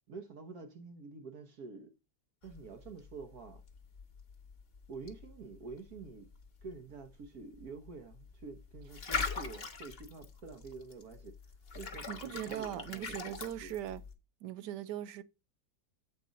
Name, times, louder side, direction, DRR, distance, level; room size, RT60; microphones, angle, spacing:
voice 1, 0.1-1.9 2.4-3.6 4.9-6.3 6.6-11.3 11.7-13.7, right 4 dB, 65° right, 1.4 m, -48 dB
sound 1, 2.4-14.1, left 4 dB, 40° left, 1.2 m, -43 dB
voice 2, 12.1-14.0 14.4-15.2, right 11 dB, 85° right, 1.3 m, -40 dB
8.2 x 4.1 x 5.1 m
omnidirectional pair, 1.8 m